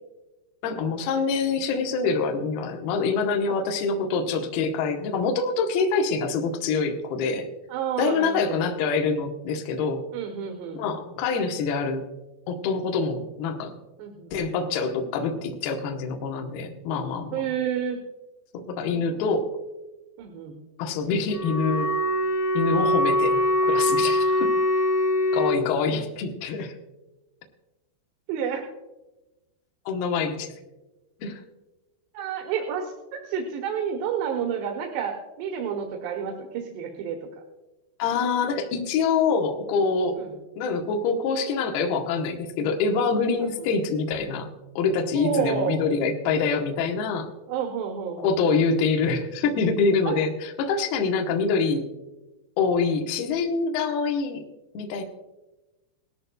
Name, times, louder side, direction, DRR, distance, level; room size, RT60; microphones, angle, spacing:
voice 1, 0.6-7.5 8.0-10.1 10.8-12.0 12.5-13.7 14.3-17.4 18.5-19.5 20.8-21.9 22.5-24.5 25.3-26.7 29.9-30.5 31.2-31.4 38.0-40.2 40.6-44.5 44.8-47.3 48.2-51.8 52.6-54.4 54.7-55.0, left 4 dB, 70° left, 2 dB, 2.7 m, -25 dB
voice 2, 7.7-8.6 10.1-10.8 14.0-14.3 17.3-18.0 18.9-19.2 20.2-20.6 28.3-28.6 32.1-37.2 40.2-40.3 43.4-43.7 45.1-45.8 47.5-48.4 50.1-50.2, right 7 dB, 75° right, 2 dB, 3.1 m, -30 dB
Wind instrument woodwind instrument, 21.3-25.6, left 1 dB, 45° left, 2.6 m, -23 dB
19.0 x 13.5 x 2.2 m, 1.1 s
omnidirectional pair, 5.1 m